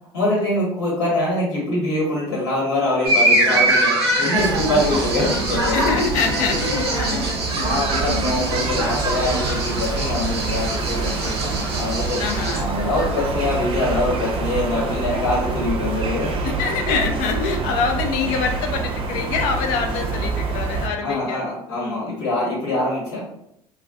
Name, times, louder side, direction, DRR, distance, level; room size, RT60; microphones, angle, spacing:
voice 1, 0.1-5.9 7.5-12.2 12.5-16.4 21.0-23.3, left 2 dB, 85° left, -5 dB, 1.3 m, -24 dB
sound 1, 3.0-12.6, right 1 dB, 90° right, 0.6 m, -23 dB
sound 2, 4.3-20.9, right 4 dB, 40° right, 0.5 m, -26 dB
voice 2, 5.7-7.3 12.2-12.7 16.4-22.0, left 5 dB, 65° left, 5 dB, 0.4 m, -25 dB
2.3 x 2.2 x 2.4 m, 0.76 s
hypercardioid pair, 65°, 13 cm